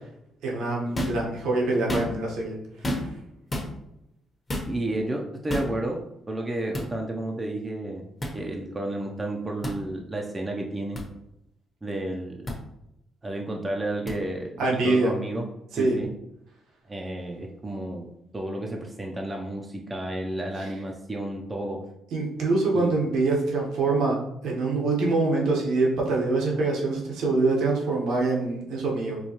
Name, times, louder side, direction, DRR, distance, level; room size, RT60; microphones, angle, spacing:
voice 1, 0.4-2.5 2.8-3.0 14.6-15.1 15.7-15.9 20.6-20.7 22.1-29.2, right 3 dB, 80° right, -2 dB, 1.0 m, -25 dB
sound 1, 0.9-1.2 1.8-2.3 2.8-3.2 3.5-3.7 4.5-4.7 5.5-5.7 6.7-6.9 8.2-8.4 9.6-9.8 10.9-11.0 12.5-12.6 14.1-14.2, left 1 dB, 25° left, 0.9 m, -29 dB
voice 2, 4.7-6.0 6.3-8.0 8.3-11.0 11.8-12.5 13.2-15.5 15.8-16.1 16.9-21.8 22.7-22.9, right 1 dB, 20° right, 1 dB, 0.5 m, -31 dB
4.5 x 2.3 x 2.8 m, 0.81 s
cardioid pair, 90°, 0 cm